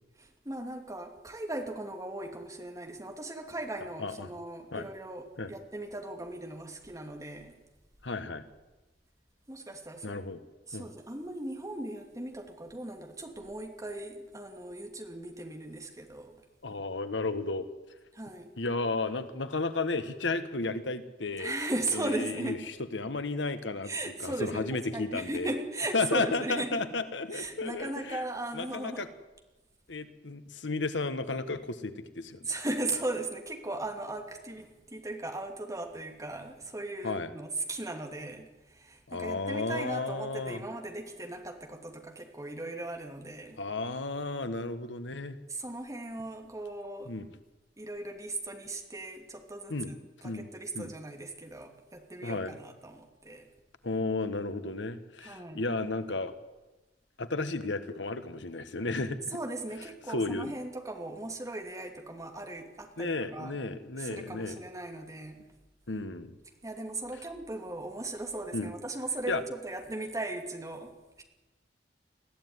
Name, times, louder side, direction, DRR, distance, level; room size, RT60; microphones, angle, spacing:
voice 1, 0.2-7.5 9.5-10.2 10.7-16.4 18.1-18.5 21.4-22.6 23.8-26.8 27.3-29.1 32.4-43.6 45.5-47.1 47.8-50.0 50.2-53.5 55.2-55.6 59.3-63.6 64.0-65.4 66.6-71.2, right 2 dB, 20° right, 4 dB, 2.7 m, -38 dB
voice 2, 4.0-4.3 4.7-4.9 5.4-5.5 8.0-8.4 10.0-10.4 10.7-10.9 16.6-17.7 18.6-21.5 21.9-25.5 25.9-28.2 28.5-29.1 29.9-32.5 37.0-37.3 39.1-40.6 43.6-45.4 47.1-47.3 49.7-49.9 50.2-50.5 50.7-50.9 52.2-52.6 53.8-56.3 57.2-59.4 60.1-60.5 63.0-64.6 65.9-66.3 68.5-68.7 69.3-69.4, left 3 dB, 85° left, 11 dB, 1.5 m, -33 dB
21.5 x 14.5 x 9.7 m, 1.1 s
head